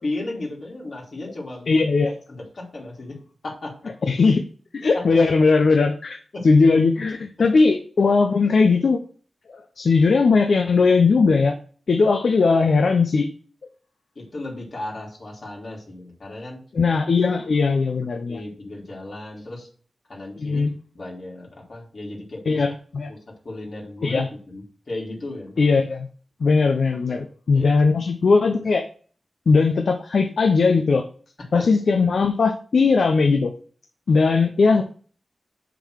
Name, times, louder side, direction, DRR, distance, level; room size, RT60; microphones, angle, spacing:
voice 1, 0.0-1.8 2.3-3.9 4.9-5.2 6.3-6.5 12.4-12.6 14.1-16.6 18.3-19.7 20.1-20.6 20.9-22.6 23.1-24.2 24.5-25.6 27.0-27.2 27.5-27.7 31.5-31.7, left 2 dB, 55° left, -3 dB, 3.3 m, -35 dB
voice 2, 1.7-2.1 4.1-4.4 4.7-6.2 6.4-9.0 9.5-11.5 11.9-13.3 16.7-18.4 20.4-20.7 22.5-23.1 24.0-24.3 25.6-26.1 26.4-28.9 29.5-31.0 31.5-33.5 34.1-34.8, left 4 dB, 75° left, 5 dB, 0.7 m, -19 dB
6.8 x 3.8 x 6.3 m, 0.43 s
wide cardioid pair, 115°, 0 cm